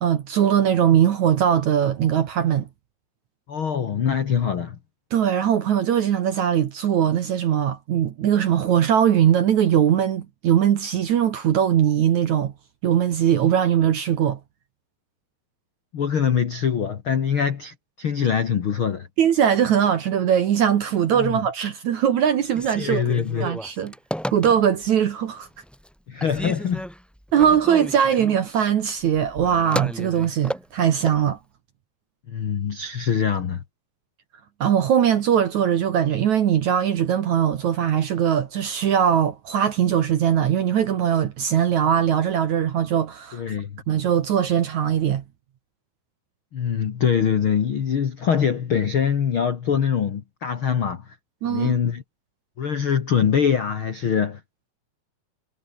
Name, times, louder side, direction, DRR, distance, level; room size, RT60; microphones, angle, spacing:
voice 1, 0.0-2.7 5.1-12.5 12.8-14.4 19.2-23.0 23.4-23.9 24.3-25.5 27.3-31.4 34.6-43.4 43.9-45.2 51.4-51.8, right 9 dB, 60° right, 2.1 m, -20 dB
voice 2, 3.5-4.8 15.9-19.1 21.2-21.4 22.8-23.5 26.1-26.9 32.3-33.6 43.3-43.7 46.5-51.1 51.4-52.0 52.6-54.4, left 7 dB, 60° left, 1.3 m, -23 dB
Telephone, 22.5-25.0 25.4-25.9 26.2-31.2, equal, ahead, 6.6 m, -33 dB
omnidirectional pair, 4.9 m